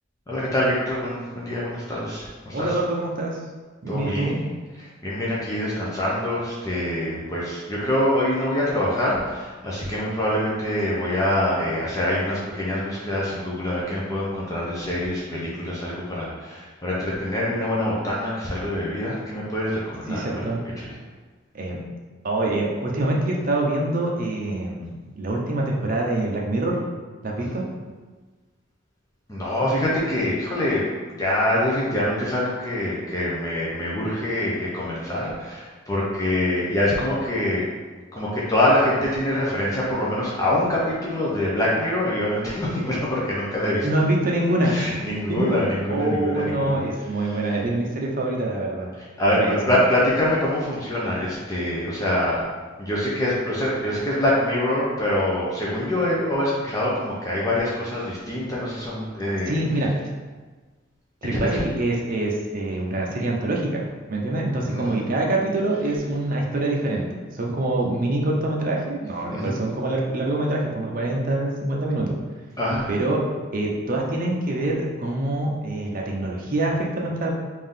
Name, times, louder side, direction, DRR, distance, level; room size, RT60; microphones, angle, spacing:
voice 1, 0.3-2.8 3.9-4.4 5.0-20.3 20.8-20.9 27.4-27.6 29.3-30.8 31.1-37.6 38.1-43.9 44.6-46.8 47.2-47.4 49.2-52.5 52.8-59.6 61.3-61.6 64.6-65.1 69.3-69.6 72.6-72.9, left 1 dB, 20° left, -6 dB, 0.6 m, -25 dB
voice 2, 2.5-3.4 3.8-4.4 20.1-20.6 21.5-21.8 22.2-26.8 27.2-27.6 43.8-44.8 45.3-45.6 45.9-48.9 49.3-49.8 59.5-59.9 61.2-63.8 64.1-72.1 72.9-73.2 73.5-77.3, right 2 dB, 45° right, -2 dB, 0.6 m, -25 dB
3.6 x 2.7 x 3.7 m, 1.3 s
head